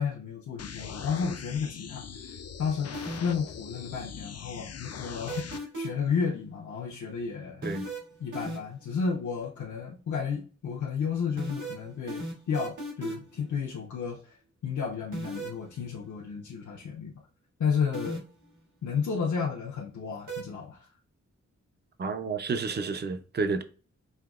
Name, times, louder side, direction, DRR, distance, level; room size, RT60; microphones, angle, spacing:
voice 1, 0.0-2.9 3.2-7.7 8.2-14.2 14.6-17.1 17.6-18.2 18.8-20.9, left 6 dB, 80° left, 0.9 m, -32 dB
sound 1, 0.6-5.6, left 7 dB, 55° left, 0.4 m, -41 dB
sound 2, 2.9-3.5 5.3-6.1 7.6-8.9 11.4-13.4 15.1-15.6 17.9-18.5 20.3-20.4, right 2 dB, 85° right, 2.0 m, -35 dB
voice 2, 22.0-23.6, right 4 dB, 35° right, 0.5 m, -30 dB
5.6 x 2.8 x 2.4 m
wide cardioid pair, 110°, 30 cm